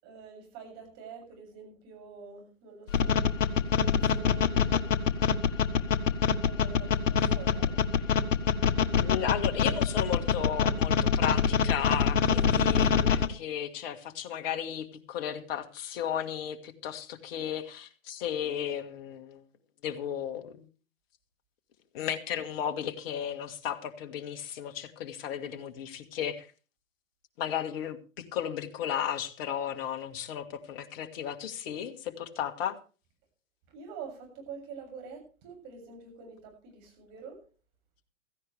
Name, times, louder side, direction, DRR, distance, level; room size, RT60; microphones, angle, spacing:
voice 1, 0.0-3.3 3.7-4.8 6.4-7.7 33.7-37.4, right 6 dB, 40° right, 2 dB, 7.4 m, -46 dB
sound 1, 2.9-13.3, left 7 dB, 70° left, 1.3 m, -24 dB
voice 2, 9.0-19.4 19.8-20.7 21.9-26.5 27.4-32.8, left 9 dB, 45° left, 7 dB, 1.8 m, -34 dB
16.5 x 15.0 x 3.4 m, 0.36 s
hypercardioid pair, 120°, 40 cm